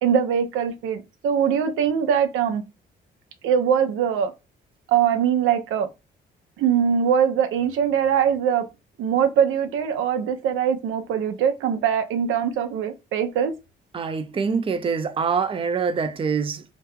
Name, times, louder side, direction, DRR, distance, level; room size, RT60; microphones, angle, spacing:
voice 1, 0.0-2.6 3.4-4.3 4.9-5.9 6.6-8.6 9.0-13.5, right 8 dB, 90° right, 0.6 m, -22 dB
voice 2, 13.9-16.7, right 5 dB, 25° right, 0.5 m, -25 dB
2.9 x 2.2 x 3.5 m
cardioid pair, 90°, 20 cm